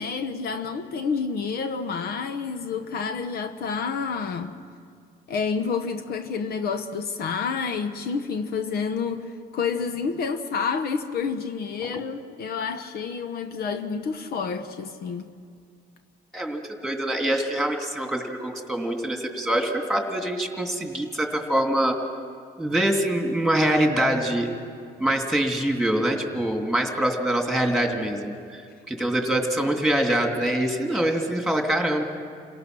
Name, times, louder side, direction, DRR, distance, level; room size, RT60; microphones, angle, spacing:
voice 1, 0.0-4.6 5.3-15.3, left 5 dB, 70° left, 1.0 m, -29 dB
voice 2, 16.3-22.0 22.6-24.5 25.0-32.0, right 1 dB, ahead, 2.7 m, -24 dB
28.5 x 18.0 x 6.2 m
cardioid pair, 110°, 17 cm